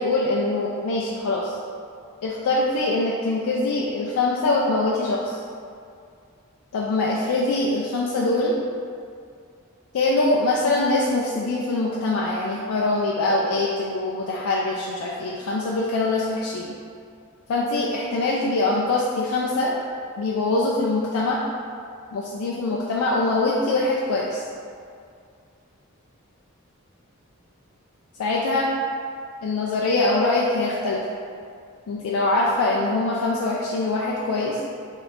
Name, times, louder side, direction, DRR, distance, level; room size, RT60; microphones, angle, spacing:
voice 1, 0.0-1.6 2.2-5.4 6.7-8.6 9.9-16.7 17.5-19.8 20.2-21.4 22.1-24.4 28.2-28.7 29.4-31.0 31.9-34.6, left 2 dB, 80° left, -4 dB, 0.3 m, -23 dB
2.7 x 2.5 x 3.2 m, 2.3 s
head